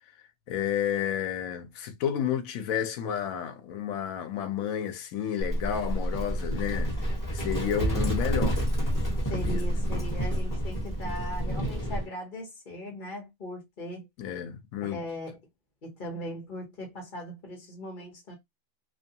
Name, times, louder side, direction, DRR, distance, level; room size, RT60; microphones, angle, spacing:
voice 1, 0.5-6.9 7.3-8.6 9.3-9.6 14.2-15.0, left 9 dB, 90° left, 1.1 m, -31 dB
Livestock farm animals working animals, 5.4-12.1, equal, 15° left, 1.1 m, -29 dB
voice 2, 9.3-14.1 14.8-15.4 15.8-18.3, equal, 40° left, 1.1 m, -39 dB
3.0 x 2.2 x 2.7 m
omnidirectional pair, 1.4 m